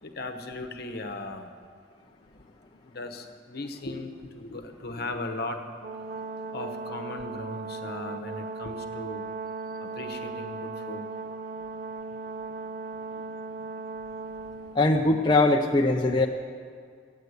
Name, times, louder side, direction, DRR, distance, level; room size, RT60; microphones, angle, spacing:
voice 1, 0.0-1.5 2.8-5.6 6.5-9.3 9.8-11.0, left 2 dB, 55° left, 5 dB, 1.0 m, -37 dB
Brass instrument, 5.8-14.8, right 4 dB, 45° right, 0.5 m, -37 dB
voice 2, 14.7-16.3, left 2 dB, 25° left, 1 dB, 0.5 m, -21 dB
12.5 x 9.4 x 8.1 m, 2.1 s
head